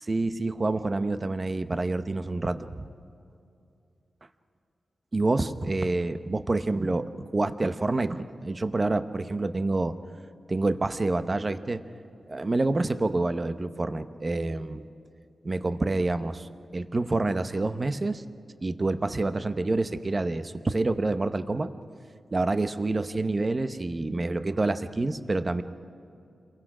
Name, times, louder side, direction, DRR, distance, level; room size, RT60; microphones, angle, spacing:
voice 1, 0.1-2.9 5.1-9.9 10.5-11.8 12.3-14.8 15.4-18.2 18.6-21.7 22.3-25.6, right 2 dB, 30° right, 11 dB, 0.9 m, -27 dB
29.0 x 22.5 x 5.0 m, 2.6 s
wide cardioid pair, 120°, 0 cm